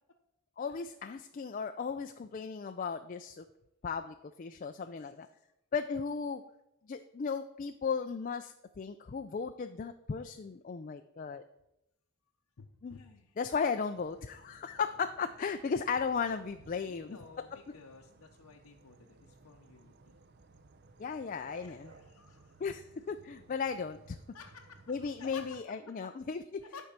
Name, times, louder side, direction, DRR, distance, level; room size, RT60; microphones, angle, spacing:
voice 1, 0.6-3.4 3.8-5.3 5.7-6.4 6.9-11.4 12.8-13.0 13.4-17.2 21.0-21.9 22.6-24.2 24.9-26.6, left 5 dB, 35° left, 7 dB, 0.3 m, -36 dB
voice 2, 12.6-13.4 16.9-20.2 21.4-22.7 24.3-24.8 25.2-25.6 25.9-26.1 26.6-26.8, left 5 dB, 85° left, 0 dB, 0.8 m, -53 dB
sound 1, 13.9-25.6, right 3 dB, 50° right, 0.6 m, -60 dB
11.5 x 4.6 x 6.7 m, 0.88 s
head